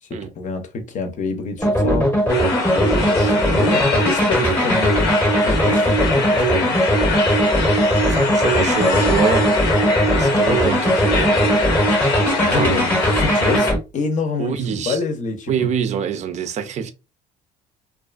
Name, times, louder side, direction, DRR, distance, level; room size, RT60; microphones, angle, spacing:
voice 1, 0.1-2.1 2.7-5.1 5.4-6.8 12.3-15.8, left 4 dB, 45° left, 0.6 m, -27 dB
sound 1, 1.6-13.8, right 1 dB, 10° left, 0.8 m, -19 dB
sound 2, 2.3-13.7, left 4 dB, 80° left, 0.7 m, -24 dB
voice 2, 3.0-3.4 8.1-9.5 10.1-11.7 12.2-12.7 14.4-15.0 15.5-16.9, right 7 dB, 45° right, 0.5 m, -25 dB
2.4 x 2.3 x 2.3 m
cardioid pair, 110°, 17 cm